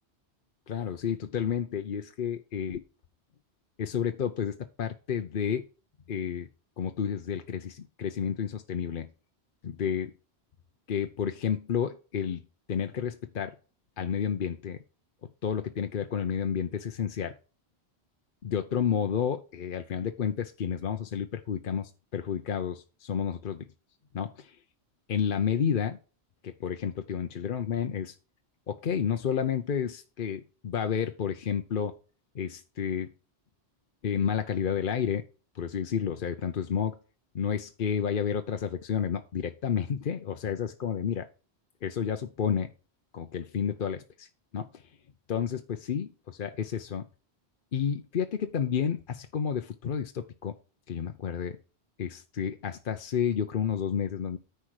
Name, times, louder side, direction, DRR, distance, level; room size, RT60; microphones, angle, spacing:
voice 1, 0.7-2.8 3.8-5.7 6.1-6.5 6.8-9.1 9.6-10.1 10.9-12.4 12.7-13.5 14.0-14.8 15.4-17.3 18.4-23.7 24.1-24.6 25.1-26.0 26.4-28.1 28.7-31.9 32.3-33.1 34.0-35.2 35.5-37.0 37.3-41.3 41.8-42.7 43.1-44.3 44.5-44.6 45.3-47.0 47.7-50.5 50.9-51.6 52.0-54.4, left 8 dB, 55° left, 7 dB, 0.8 m, -30 dB
10.0 x 4.5 x 6.4 m, 0.34 s
omnidirectional pair, 1.1 m